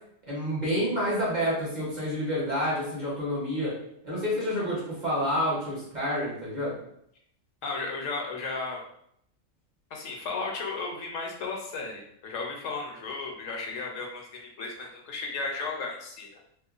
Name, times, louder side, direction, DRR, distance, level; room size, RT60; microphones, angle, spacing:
voice 1, 0.3-3.8 4.0-6.7, equal, 40° right, -7 dB, 0.9 m, -28 dB
voice 2, 7.6-8.8 9.9-16.3, left 3 dB, 75° left, 0 dB, 1.0 m, -34 dB
2.9 x 2.1 x 2.4 m, 0.71 s
omnidirectional pair, 1.4 m